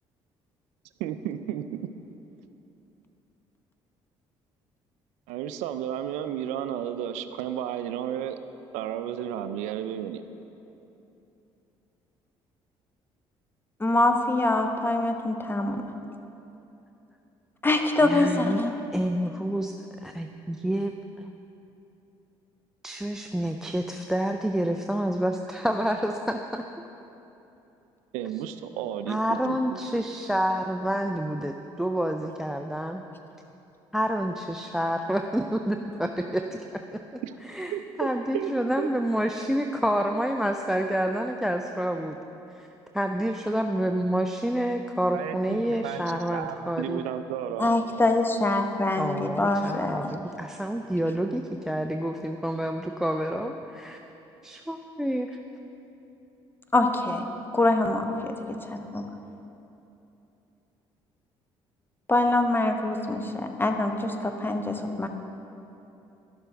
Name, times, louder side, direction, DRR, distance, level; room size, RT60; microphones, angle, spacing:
voice 1, 1.0-1.9 5.3-8.4 8.7-10.2 28.1-29.8 37.2-37.4 37.7-38.1 38.3-38.5 38.8-38.9 45.1-47.8, right 10 dB, 80° right, 10 dB, 0.4 m, -33 dB
voice 2, 13.8-15.8 17.6-18.7 47.6-50.1 56.7-57.2 57.5-58.0 58.9-59.0 62.1-65.1, left 2 dB, 20° left, 5 dB, 0.9 m, -24 dB
voice 3, 18.1-18.6 18.9-19.7 20.0-21.3 22.8-26.6 29.1-33.0 33.9-36.4 36.7-37.0 37.4-42.2 42.5-42.7 42.9-47.0 49.0-54.0 54.4-55.4, right 1 dB, 5° right, 5 dB, 0.4 m, -28 dB
12.0 x 6.7 x 3.4 m, 2.9 s
supercardioid pair, 65°, 12 cm